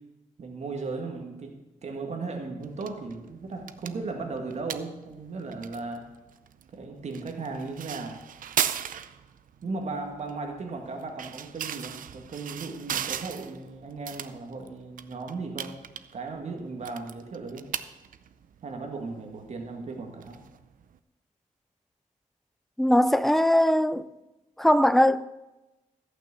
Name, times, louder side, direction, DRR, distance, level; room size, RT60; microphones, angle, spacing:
voice 1, 0.4-6.0 6.7-8.2 9.6-15.7 16.1-17.7 18.6-20.4, right 3 dB, 55° right, 1.7 m, -36 dB
sound 1, 2.6-21.0, right 9 dB, 75° right, 0.6 m, -38 dB
voice 2, 22.8-24.1 24.6-25.3, left 1 dB, ahead, 0.4 m, -20 dB
14.0 x 6.1 x 8.3 m
wide cardioid pair, 140°, 14 cm